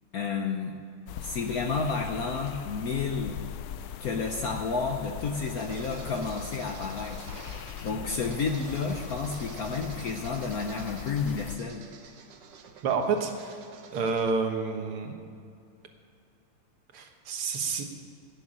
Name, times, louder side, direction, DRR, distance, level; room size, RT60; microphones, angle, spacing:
voice 1, 0.1-0.7 1.2-3.4 4.0-7.3 7.8-11.9, left 4 dB, 60° left, 4 dB, 1.0 m, -31 dB
atmosphere autumn forest, 1.1-11.6, left 10 dB, 90° left, 1.6 m, -40 dB
sound 1, 4.7-14.3, right 6 dB, 60° right, 1.4 m, -48 dB
voice 2, 12.8-13.6 13.9-15.2 16.9-17.8, right 5 dB, 75° right, 4 dB, 2.2 m, -29 dB
16.5 x 7.0 x 8.9 m, 2.4 s
omnidirectional pair, 2.4 m